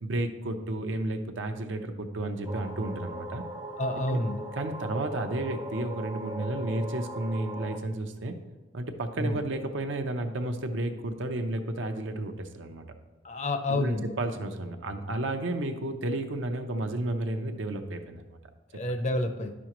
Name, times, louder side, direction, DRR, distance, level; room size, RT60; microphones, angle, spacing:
voice 1, 0.0-3.4 4.1-4.2 4.6-8.4 8.7-12.9 13.7-18.2, right 2 dB, 75° right, 6 dB, 0.7 m, -32 dB
sound 1, 2.4-7.8, right 1 dB, 20° right, 0.5 m, -39 dB
voice 2, 3.8-4.4 9.2-9.4 13.2-14.1 18.7-19.5, left 1 dB, 35° left, 7 dB, 0.5 m, -29 dB
10.0 x 6.2 x 3.0 m, 1.2 s
head